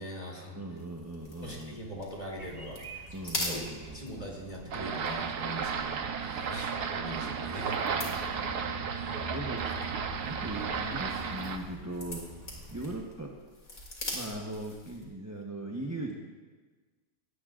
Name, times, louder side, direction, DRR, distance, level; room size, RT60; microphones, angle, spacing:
voice 1, 0.0-0.6 1.4-3.6 3.9-7.7, equal, 25° left, -2 dB, 3.2 m, -42 dB
voice 2, 0.5-1.9 3.1-4.1 6.4-6.5 7.8-9.9 10.2-12.4 12.7-13.4 14.1-16.2, right 1 dB, 10° right, -2 dB, 1.0 m, -40 dB
sound 1, 0.8-15.1, left 1 dB, 55° left, 3.4 m, -44 dB
sound 2, 2.4-13.0, right 1 dB, 25° right, 1.2 m, -46 dB
sound 3, 4.7-11.6, right 6 dB, 85° right, 1.5 m, -34 dB
17.5 x 17.5 x 2.5 m, 1.4 s
omnidirectional pair, 1.7 m